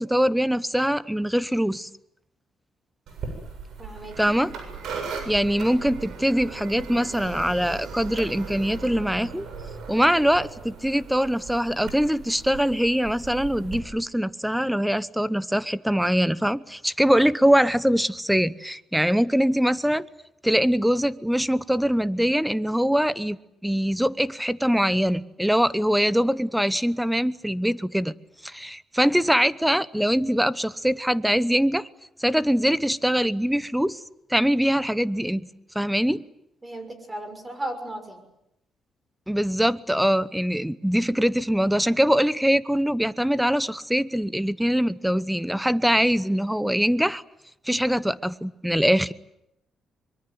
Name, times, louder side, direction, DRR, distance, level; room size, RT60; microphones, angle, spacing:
voice 1, 0.0-1.9 4.2-4.5 5.3-9.5 9.9-20.1 20.4-23.4 23.6-28.2 28.4-31.9 32.2-34.0 34.3-35.5 35.7-36.2 39.3-47.2 47.7-49.1, equal, 5° right, 17 dB, 1.0 m, -23 dB
sound 1, 3.1-13.8, right 5 dB, 75° right, 7.5 m, -38 dB
voice 2, 3.8-4.4 36.6-38.2, right 1 dB, 20° right, 9 dB, 6.2 m, -35 dB
24.5 x 22.5 x 9.5 m, 0.82 s
cardioid pair, 90°, 0 cm